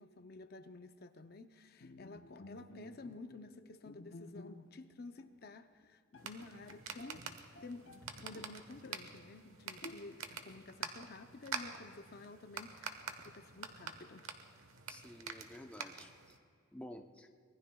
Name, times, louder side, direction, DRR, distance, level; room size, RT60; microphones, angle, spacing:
voice 1, 0.0-7.2 7.6-14.3, left 3 dB, 45° left, 8 dB, 0.6 m, -52 dB
Bowed string instrument, 1.8-4.9 5.2-5.4 5.8-5.9 6.1-8.0 8.3-9.2 9.8-10.4, left 2 dB, 60° left, 0.9 m, -54 dB
sound 1, 6.1-16.4, right 5 dB, 80° right, 1.1 m, -47 dB
voice 2, 14.9-16.4 16.7-17.3, left 1 dB, 5° left, 4 dB, 0.6 m, -51 dB
25.0 x 20.0 x 2.3 m, 2.3 s
head